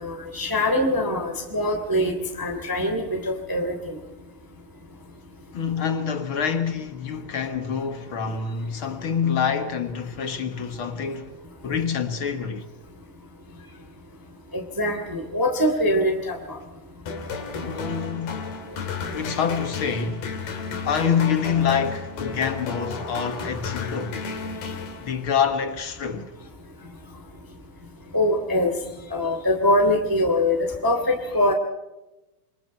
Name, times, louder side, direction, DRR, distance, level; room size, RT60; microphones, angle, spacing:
voice 1, 0.0-3.8 14.5-16.4 28.1-28.7 29.1-31.5, left 1 dB, 5° right, 2.4 m, -23 dB
voice 2, 5.5-11.3 11.6-12.7 17.6-18.5 19.1-20.4 20.8-24.2 25.0-26.3, left 7 dB, 55° left, 1.5 m, -26 dB
sound 1, 17.1-25.4, left 4 dB, 90° left, 4.8 m, -33 dB
28.0 x 24.5 x 4.4 m
omnidirectional pair, 4.1 m